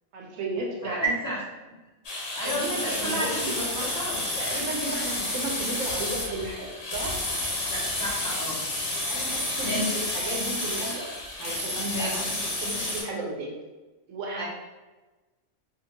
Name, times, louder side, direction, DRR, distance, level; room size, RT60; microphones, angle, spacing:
voice 1, 0.1-1.0 2.4-3.6 4.4-7.2 9.1-11.0 11.4-12.2 12.6-13.5 14.1-14.4, right 2 dB, 80° right, -1 dB, 1.0 m, -34 dB
voice 2, 0.8-1.4 2.3-4.6 7.7-8.6 9.6-10.0 11.9-12.2 14.4-14.5, equal, 20° left, -9 dB, 0.6 m, -31 dB
sound 1, 2.0-13.0, left 1 dB, 70° left, 1.2 m, -30 dB
2.7 x 2.4 x 2.7 m, 1.2 s
omnidirectional pair, 1.3 m